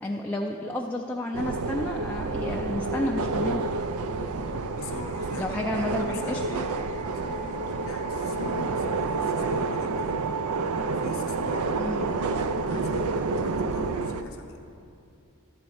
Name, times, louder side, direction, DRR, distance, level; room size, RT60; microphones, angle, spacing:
voice 1, 0.0-3.6 5.4-6.4 11.8-12.1, left 1 dB, 10° left, -2 dB, 0.3 m, -31 dB
sound 1, 1.3-14.2, right 3 dB, 75° right, 0.5 m, -29 dB
voice 2, 4.8-6.7 7.0-10.2 10.9-14.6, left 3 dB, 65° left, 2 dB, 0.7 m, -43 dB
Wind instrument woodwind instrument, 4.9-9.0, left 1 dB, 25° right, 0.8 m, -50 dB
12.5 x 4.2 x 7.8 m, 2.5 s
head